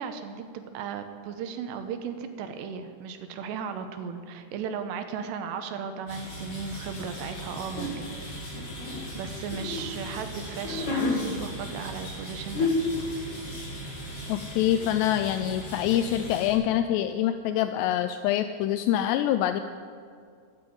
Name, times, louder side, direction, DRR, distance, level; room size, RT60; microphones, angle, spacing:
voice 1, 0.0-8.2 9.2-12.7, right 6 dB, 75° right, 7 dB, 2.9 m, -36 dB
sound 1, 6.1-16.5, equal, 35° left, 5.0 m, -39 dB
sound 2, 7.8-8.0 8.6-9.8 10.5-11.2 12.2-12.3 12.5-13.0, left 3 dB, 50° left, 2.9 m, -28 dB
voice 2, 14.3-19.6, left 11 dB, 85° left, 10 dB, 2.4 m, -25 dB
12.5 x 10.5 x 8.6 m, 2.2 s
omnidirectional pair, 5.4 m